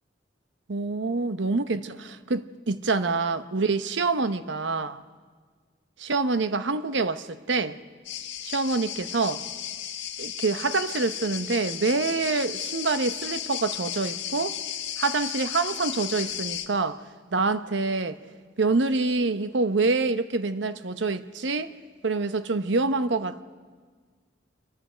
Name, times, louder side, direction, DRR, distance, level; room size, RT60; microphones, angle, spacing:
voice 1, 0.7-5.0 6.0-7.8 8.4-9.4 10.2-14.6 15.0-17.0 17.3-18.2 18.6-21.7 22.0-23.4, right 3 dB, 80° right, 0.8 m, -26 dB
sound 1, 8.0-16.7, left 10 dB, 80° left, 1.5 m, -34 dB
26.5 x 22.0 x 5.1 m
head